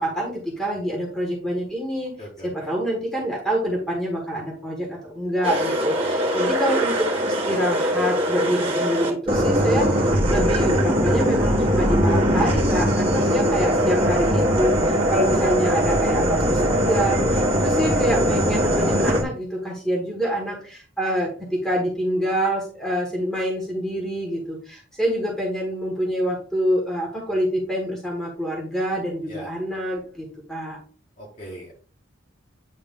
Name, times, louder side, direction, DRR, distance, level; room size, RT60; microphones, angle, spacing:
voice 1, 0.0-2.1 2.4-30.8, equal, ahead, -2 dB, 1.5 m, -26 dB
voice 2, 2.2-2.7 13.1-13.4 29.3-29.5 31.2-31.7, equal, 35° left, -4 dB, 1.5 m, -40 dB
sound 1, 5.4-19.2, equal, 25° right, 1.4 m, -21 dB
8.7 x 3.4 x 3.6 m, 0.40 s
head